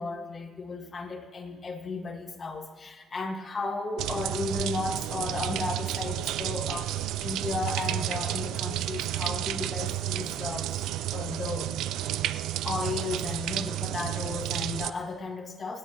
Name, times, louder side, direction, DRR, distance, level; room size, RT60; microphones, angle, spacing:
voice 1, 0.0-11.7 12.6-15.8, left 3 dB, 40° left, 3 dB, 1.8 m, -34 dB
sound 1, 4.0-14.9, right 13 dB, 90° right, 0.4 m, -31 dB
28.0 x 9.9 x 3.0 m, 1.5 s
cardioid pair, 90°, 0 cm